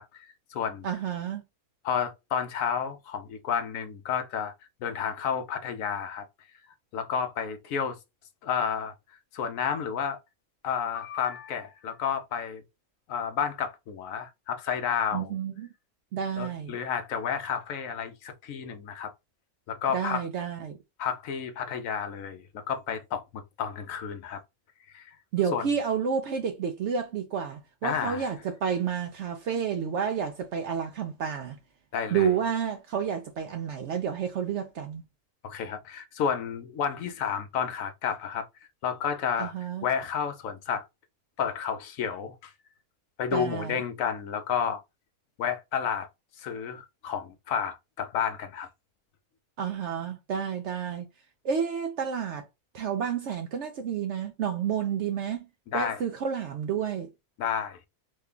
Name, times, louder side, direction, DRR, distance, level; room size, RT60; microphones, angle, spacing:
voice 1, 0.0-0.9 1.8-4.5 4.8-6.2 6.9-8.0 8.4-8.9 9.3-10.2 10.6-12.6 13.1-15.3 16.4-19.1 19.7-20.2 21.0-24.4 24.9-25.2 25.5-25.7 27.8-28.3 31.9-32.3 35.4-38.5 38.8-39.5 39.8-40.9 41.4-42.5 43.2-44.8 45.4-46.1 46.4-48.7 55.7-56.0 57.4-57.8, left 7 dB, 70° left, 0.9 m, -31 dB
voice 2, 0.8-1.4 15.1-15.7 16.1-16.8 19.9-20.8 25.3-31.6 32.1-35.0 39.4-39.8 43.3-43.8 49.6-51.1 51.4-52.4 52.7-55.5 55.7-57.1, right 7 dB, 65° right, 0.7 m, -30 dB
3.2 x 2.2 x 3.6 m
omnidirectional pair, 1.6 m